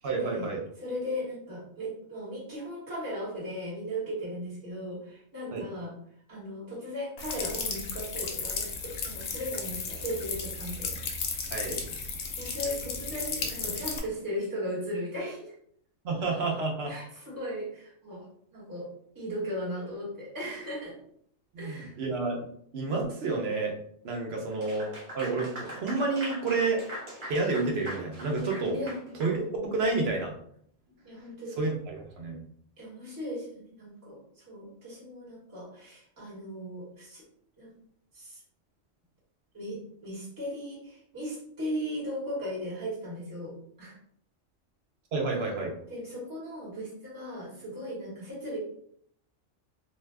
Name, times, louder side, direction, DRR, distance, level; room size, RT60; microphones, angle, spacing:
voice 1, 0.0-0.6 5.5-5.6 11.5-11.8 16.0-16.9 21.5-22.5 22.7-23.7 24.0-24.9 25.1-26.8 27.3-28.8 29.2-30.4 31.6-32.4 45.1-45.7, right 3 dB, 60° right, 0 dB, 0.9 m, -29 dB
voice 2, 0.8-5.9 6.3-11.0 12.4-15.5 16.9-18.3 18.5-18.9 19.1-20.9 21.6-22.0 28.7-29.6 31.0-31.6 32.8-37.2 37.6-37.7 38.1-38.4 39.5-43.9 45.9-48.6, equal, 15° right, -7 dB, 1.2 m, -37 dB
sound 1, 7.2-14.0, left 5 dB, 80° left, 0.9 m, -34 dB
Clapping / Applause, 24.5-29.4, equal, 45° right, 1.1 m, -41 dB
2.6 x 2.3 x 3.2 m, 0.66 s
omnidirectional pair, 1.3 m